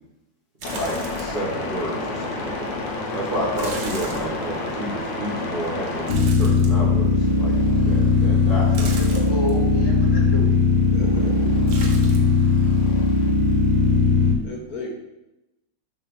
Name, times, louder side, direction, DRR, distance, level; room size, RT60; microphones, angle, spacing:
sound 1, 0.6-14.4, left 3 dB, 75° left, 1.6 m, -20 dB
sound 2, 0.6-1.5 1.9-2.0 3.6-4.8 6.1-7.2 8.7-9.6 11.7-12.4 12.6-13.3 13.6-13.7, right 3 dB, 70° right, 1.5 m, -36 dB
voice 1, 0.7-2.8 3.1-7.6 7.9-8.9 11.0-11.5, right 1 dB, 35° right, -4 dB, 1.0 m, -31 dB
voice 2, 8.7-10.6, left 2 dB, 15° left, -3 dB, 1.1 m, -31 dB
voice 3, 10.9-11.3 14.4-14.9, left 3 dB, 60° left, -1 dB, 1.4 m, -34 dB
7.4 x 2.9 x 5.3 m, 0.92 s
omnidirectional pair, 2.0 m